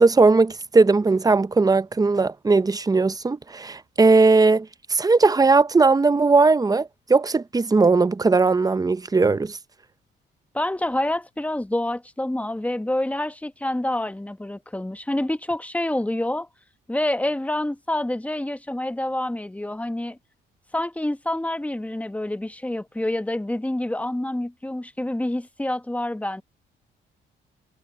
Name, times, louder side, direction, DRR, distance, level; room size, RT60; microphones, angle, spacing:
voice 1, 0.0-9.6, right 3 dB, 20° right, 0.7 m, -18 dB
voice 2, 10.5-16.5 16.9-20.2 20.7-26.4, left 1 dB, 5° left, 1.2 m, -27 dB
cardioid pair, 90°, 20 cm